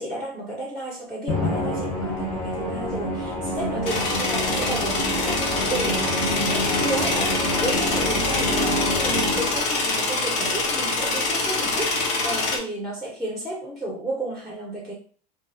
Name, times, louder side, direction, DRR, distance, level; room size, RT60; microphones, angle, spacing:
voice 1, 0.0-14.9, right 2 dB, ahead, -4 dB, 1.0 m, -32 dB
Musical instrument, 1.3-9.8, left 1 dB, 40° left, 1.0 m, -27 dB
sound 1, 3.8-12.6, left 3 dB, 65° left, 0.9 m, -25 dB
2.6 x 2.4 x 2.7 m, 0.43 s
supercardioid pair, 105°, 21 cm